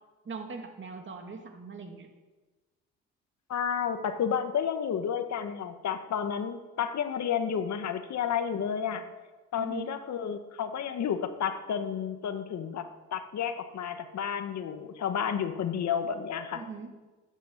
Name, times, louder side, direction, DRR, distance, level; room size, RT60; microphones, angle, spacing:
voice 1, 0.2-2.1 9.5-9.9 16.5-16.9, right 4 dB, 40° right, 4 dB, 2.7 m, -41 dB
voice 2, 3.5-9.0 9.5-16.6, left 8 dB, 65° left, 8 dB, 1.5 m, -31 dB
13.0 x 9.1 x 8.8 m, 1.2 s
cardioid pair, 90°, 30 cm